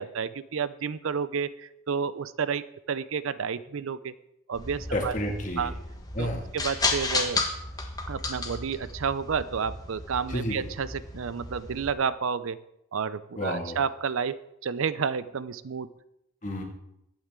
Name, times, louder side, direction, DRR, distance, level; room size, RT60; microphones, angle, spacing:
voice 1, 0.0-4.1 4.5-5.1 5.6-5.7 6.2-7.4 8.1-12.6 12.9-15.9, right 6 dB, 70° right, 16 dB, 0.5 m, -31 dB
sound 1, 4.5-11.9, left 3 dB, 15° left, 1.2 m, -33 dB
voice 2, 4.9-5.7 6.1-6.4 10.3-10.6 13.4-13.8 16.4-16.6, left 1 dB, 35° left, 1 dB, 2.1 m, -30 dB
22.5 x 8.8 x 3.7 m, 0.82 s
head